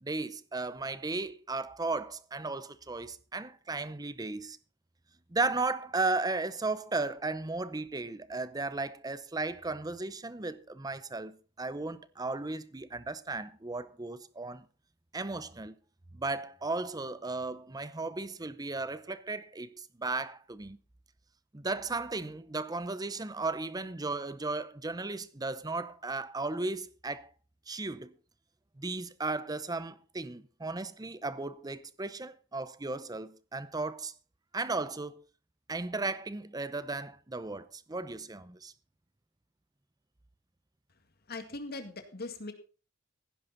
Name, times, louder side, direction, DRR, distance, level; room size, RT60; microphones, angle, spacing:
voice 1, 0.0-4.6 5.3-14.6 15.1-15.8 16.1-20.8 21.5-27.3 27.7-28.1 28.8-34.1 34.5-35.2 35.7-38.7, right 3 dB, 20° right, 0.7 m, -35 dB
voice 2, 41.3-42.5, left 2 dB, 50° left, 2.0 m, -40 dB
16.0 x 10.5 x 4.0 m
head